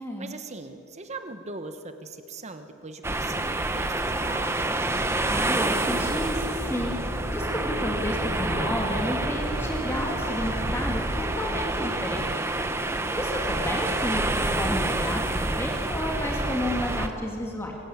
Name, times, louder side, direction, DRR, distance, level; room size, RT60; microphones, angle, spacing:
voice 1, 0.0-4.7 13.4-14.0, right 3 dB, 30° right, 8 dB, 1.1 m, -40 dB
sound 1, 3.0-17.1, right 2 dB, 10° right, 0.9 m, -28 dB
sound 2, 3.4-10.7, left 3 dB, 75° left, 2.1 m, -44 dB
voice 2, 5.3-7.0 7.3-12.5 13.1-17.7, left 1 dB, 10° left, 0 dB, 2.4 m, -31 dB
23.5 x 15.0 x 8.7 m, 2.5 s
head